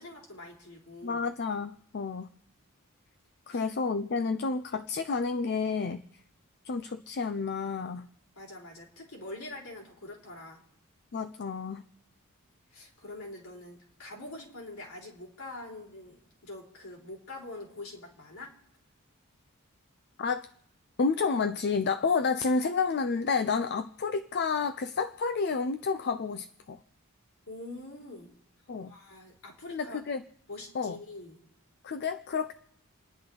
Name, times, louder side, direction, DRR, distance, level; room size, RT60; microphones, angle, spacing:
voice 1, 0.0-1.3 3.5-3.6 8.4-10.6 12.7-18.5 27.5-28.3 28.8-30.0 30.5-31.4, left 2 dB, 70° left, -1 dB, 3.7 m, -44 dB
voice 2, 1.0-2.3 3.5-6.0 6.6-8.1 11.1-11.8 20.2-20.5 21.0-26.8 28.7-28.9 29.7-30.2 30.7-31.0 31.8-32.5, left 4 dB, 50° left, 11 dB, 0.5 m, -30 dB
29.5 x 10.5 x 3.9 m, 0.75 s
head